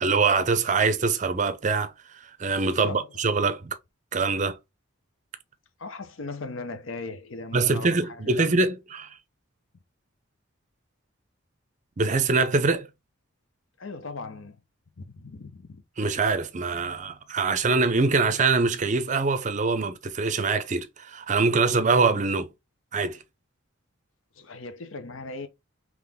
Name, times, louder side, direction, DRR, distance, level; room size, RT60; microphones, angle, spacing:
voice 1, 0.0-3.8 4.1-4.6 7.5-9.2 12.0-12.9 16.0-22.5 22.9-23.2, right 4 dB, 35° right, 0.5 m, -24 dB
voice 2, 2.7-3.1 5.8-8.5 13.8-14.6 15.0-15.8 24.4-25.5, left 3 dB, 70° left, 0.7 m, -38 dB
3.9 x 3.0 x 3.5 m
head